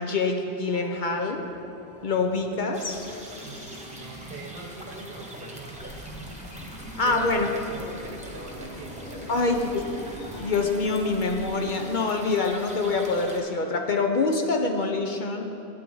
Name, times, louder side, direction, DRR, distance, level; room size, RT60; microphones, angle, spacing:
voice 1, 0.0-1.5 2.0-3.1 7.0-7.5 9.3-9.8 10.4-15.4, left 3 dB, 55° left, 3 dB, 0.8 m, -25 dB
sound 1, 0.7-11.2, left 1 dB, 15° left, 1.4 m, -46 dB
sound 2, 2.7-13.4, right 1 dB, 5° right, 1.1 m, -44 dB
voice 2, 3.4-6.3 7.0-9.9, right 3 dB, 60° right, 2 dB, 1.2 m, -42 dB
sound 3, 5.7-12.0, equal, 80° left, 1.8 m, -43 dB
12.5 x 8.3 x 3.8 m, 2.9 s
omnidirectional pair, 1.1 m